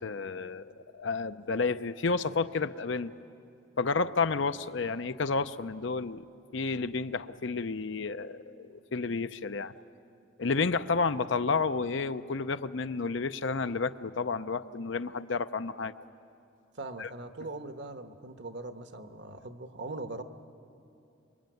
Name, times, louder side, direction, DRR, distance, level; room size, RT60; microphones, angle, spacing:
voice 1, 0.0-0.6 0.9-3.1 3.8-6.3 6.5-9.7 10.4-15.9 17.0-17.1, left 4 dB, 65° left, 11 dB, 0.7 m, -31 dB
voice 2, 16.7-20.2, right 2 dB, 60° right, 8 dB, 1.3 m, -41 dB
26.5 x 22.5 x 9.2 m, 2.6 s
head